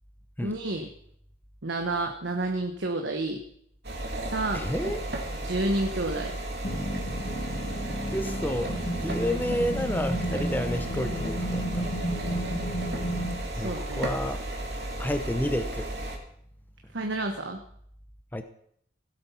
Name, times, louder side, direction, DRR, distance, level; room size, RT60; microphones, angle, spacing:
voice 1, 0.4-0.9 1.6-3.4 4.3-4.7 5.4-6.3 13.5-14.1 16.9-17.6, right 2 dB, 80° right, 3 dB, 1.2 m, -29 dB
sound 1, 3.8-16.2, right 1 dB, 60° right, 2.6 m, -34 dB
voice 2, 4.5-5.1 8.1-12.0 13.5-14.4 15.0-15.9 18.3-18.4, left 1 dB, 10° left, 8 dB, 0.7 m, -30 dB
sound 2, 6.6-13.4, equal, 45° left, 2.0 m, -32 dB
17.0 x 7.8 x 5.7 m, 0.68 s
head